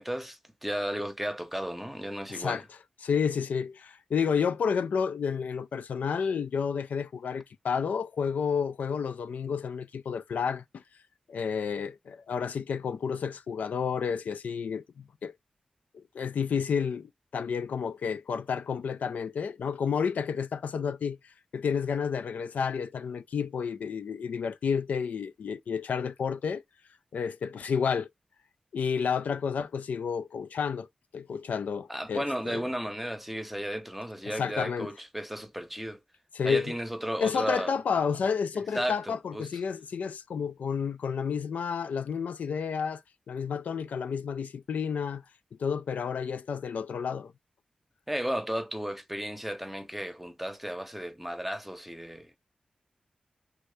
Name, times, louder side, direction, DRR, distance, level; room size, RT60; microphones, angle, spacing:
voice 1, 0.0-2.6 31.9-36.0 36.4-37.7 38.7-39.5 48.1-52.4, equal, 5° right, 0.7 m, -34 dB
voice 2, 2.3-2.6 3.0-10.8 11.3-15.3 15.9-26.6 27.1-28.1 28.7-30.9 31.1-32.6 34.3-34.9 36.3-36.7 37.2-43.0 43.3-45.2 45.6-47.3, left 6 dB, 90° left, 0.3 m, -31 dB
3.3 x 2.6 x 3.3 m
cardioid pair, 55°, 3 cm